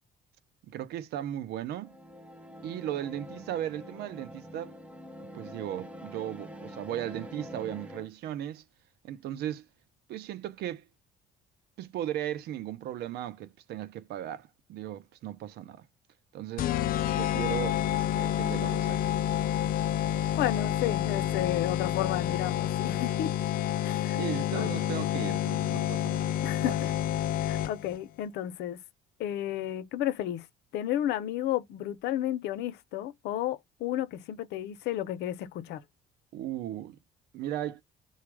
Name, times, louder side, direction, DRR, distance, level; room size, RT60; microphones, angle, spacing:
voice 1, 0.7-1.9 2.6-4.7 5.3-8.6 9.0-9.6 10.1-10.8 11.8-15.8 16.3-16.7 17.1-19.1 24.1-26.3 26.6-26.8 36.3-37.0 37.3-37.8, right 11 dB, 75° right, 0.6 m, -36 dB
sound 1, 1.7-8.1, equal, 5° right, 0.9 m, -45 dB
sound 2, 16.6-28.0, left 11 dB, 60° left, 0.4 m, -29 dB
voice 2, 20.4-23.3 23.8-24.2 24.5-24.7 26.4-26.9 27.5-28.8 29.2-30.4 30.7-35.8, left 12 dB, 80° left, 0.8 m, -32 dB
4.2 x 2.4 x 4.7 m
cardioid pair, 110°, 17 cm